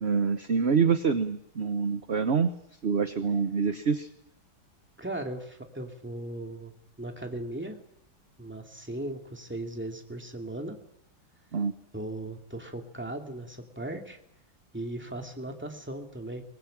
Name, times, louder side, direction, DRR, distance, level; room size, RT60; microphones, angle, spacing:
voice 1, 0.0-2.5 2.8-4.1 11.5-11.7, right 5 dB, 40° right, 9 dB, 1.0 m, -26 dB
voice 2, 5.0-6.7 7.0-7.8 8.4-10.8 11.9-14.2 14.7-16.4, right 1 dB, 5° right, 3 dB, 2.4 m, -37 dB
22.5 x 21.0 x 8.8 m, 0.78 s
omnidirectional pair, 2.2 m